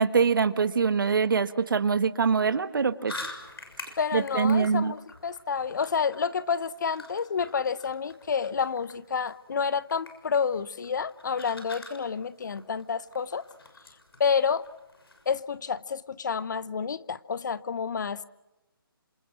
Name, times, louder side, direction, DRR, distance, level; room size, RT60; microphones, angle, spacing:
voice 1, 0.0-3.1 4.1-4.9, right 5 dB, 60° right, 11 dB, 1.6 m, -24 dB
sound 1, 3.1-15.3, left 2 dB, 80° left, 6.5 m, -47 dB
voice 2, 4.0-13.5 14.2-14.6 15.3-18.2, left 6 dB, 50° left, 17 dB, 0.9 m, -29 dB
29.0 x 27.0 x 6.3 m, 1.0 s
hypercardioid pair, 160°, 12 cm